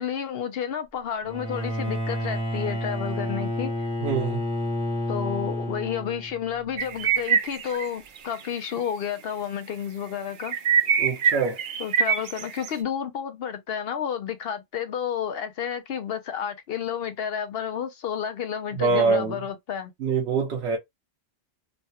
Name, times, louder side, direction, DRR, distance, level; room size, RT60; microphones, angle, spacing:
voice 1, 0.0-3.9 5.1-10.6 11.8-19.9, left 8 dB, 65° left, 0.7 m, -31 dB
Bowed string instrument, 1.2-6.5, equal, 5° right, 0.8 m, -30 dB
voice 2, 4.0-4.4 11.0-11.6 18.7-19.4 20.0-20.8, right 4 dB, 75° right, 1.0 m, -24 dB
sound 1, 6.8-7.9 8.2-8.4 8.8-8.9 10.4-12.7, right 7 dB, 55° right, 0.6 m, -23 dB
3.1 x 2.2 x 2.7 m
omnidirectional pair, 1.2 m